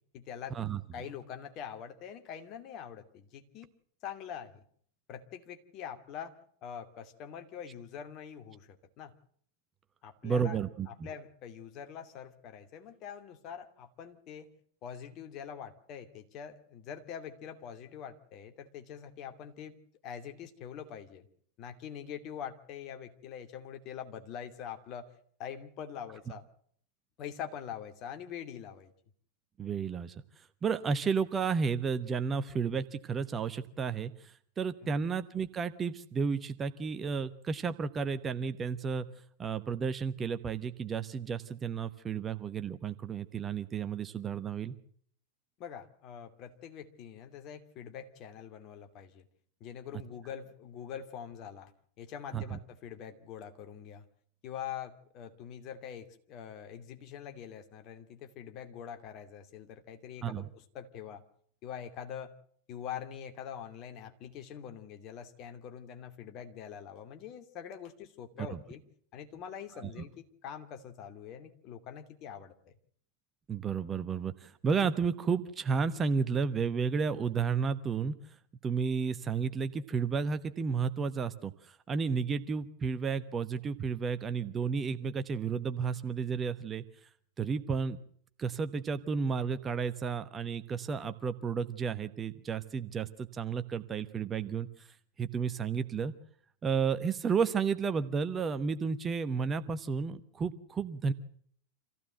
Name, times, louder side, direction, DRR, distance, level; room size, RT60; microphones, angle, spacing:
voice 1, 0.1-0.6 0.9-3.7 4.0-4.6 5.1-6.3 6.6-9.1 10.0-10.6 10.9-14.5 14.8-19.7 20.0-21.3 21.6-25.1 25.4-26.4 27.2-28.9 34.8-35.0 45.6-49.3 49.6-51.7 52.0-54.0 54.4-61.2 61.6-62.3 62.7-68.8 69.1-72.7, left 8 dB, 35° left, 6 dB, 2.5 m, -44 dB
voice 2, 10.2-10.9 29.6-30.1 30.6-39.1 39.4-44.7 52.3-52.6 60.2-60.5 69.8-69.9 73.5-78.1 78.6-86.8 87.4-88.0 88.4-94.9 95.2-96.1 96.6-101.1, right 5 dB, 20° right, 11 dB, 1.0 m, -32 dB
26.0 x 15.5 x 7.8 m, 0.63 s
figure-of-eight pair, 90°, 0 cm